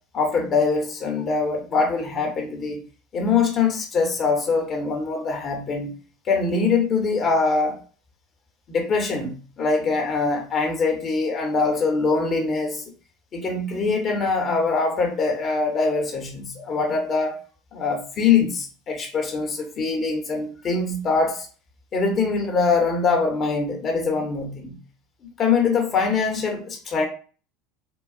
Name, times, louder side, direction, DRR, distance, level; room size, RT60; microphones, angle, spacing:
voice 1, 0.1-2.8 3.1-5.9 6.3-7.8 8.7-12.8 13.3-17.3 17.7-21.5 21.9-24.7 25.4-27.1, left 4 dB, 40° left, 0.9 m, -23 dB
3.7 x 2.2 x 2.4 m
hypercardioid pair, 75°, 0 cm